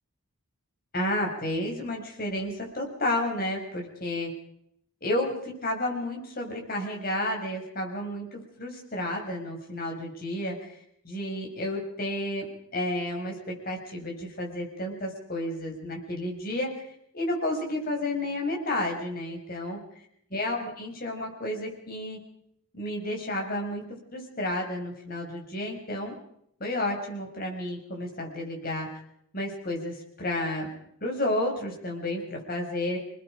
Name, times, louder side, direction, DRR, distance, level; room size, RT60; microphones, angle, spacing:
voice 1, 0.9-4.3 5.0-10.7 11.0-12.5 12.7-13.3 13.6-16.8 17.1-19.8 20.3-22.2 22.7-23.8 24.1-26.1 26.6-28.9 29.3-30.7 31.0-33.0, left 1 dB, 40° left, 1 dB, 6.2 m, -31 dB
28.0 x 20.0 x 5.1 m, 0.72 s
head